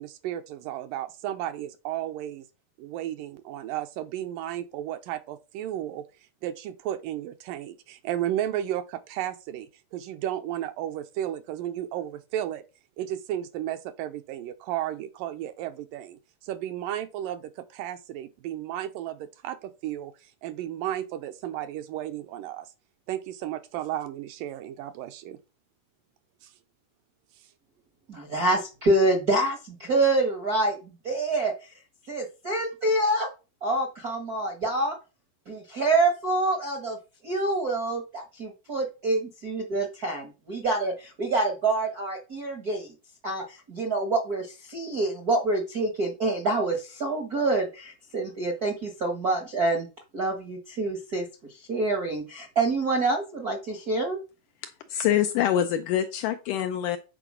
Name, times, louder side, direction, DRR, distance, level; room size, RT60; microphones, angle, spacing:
voice 1, 0.0-2.5 2.8-6.0 6.4-12.6 13.0-22.7 23.1-25.4 26.4-26.5, right 12 dB, 75° right, 2.1 m, -33 dB
voice 2, 28.1-33.3 33.6-35.0 35.4-37.0 37.2-42.9 43.2-49.9 50.1-54.2, right 2 dB, 55° right, 1.0 m, -27 dB
voice 3, 54.9-57.0, left 10 dB, 80° left, 1.9 m, -25 dB
8.9 x 4.5 x 6.1 m
omnidirectional pair, 4.3 m